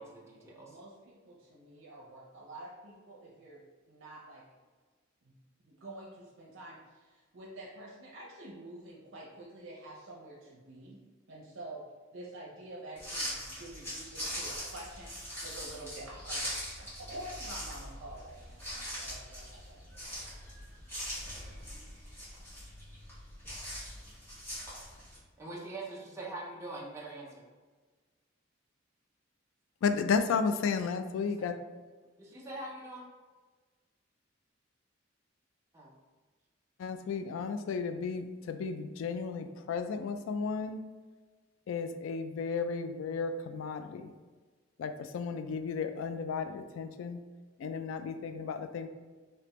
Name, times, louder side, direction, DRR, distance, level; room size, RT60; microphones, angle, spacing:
voice 1, 0.0-0.8 20.6-20.7 25.4-27.5 31.4-31.5 32.2-33.1 35.7-36.0, right 2 dB, 15° right, -5 dB, 0.6 m, -43 dB
voice 2, 0.5-3.6 3.9-4.4 5.2-5.3 5.6-6.8 7.3-11.0 11.3-11.8 12.1-20.3, right 1 dB, 80° right, -4 dB, 0.7 m, -48 dB
sound 1, 13.0-25.2, equal, 10° left, 1.4 m, -41 dB
voice 3, 29.8-31.5 36.8-40.8 41.7-44.1 44.8-47.2 47.6-48.9, left 5 dB, 85° left, 10 dB, 0.3 m, -33 dB
3.4 x 2.8 x 3.0 m, 1.4 s
head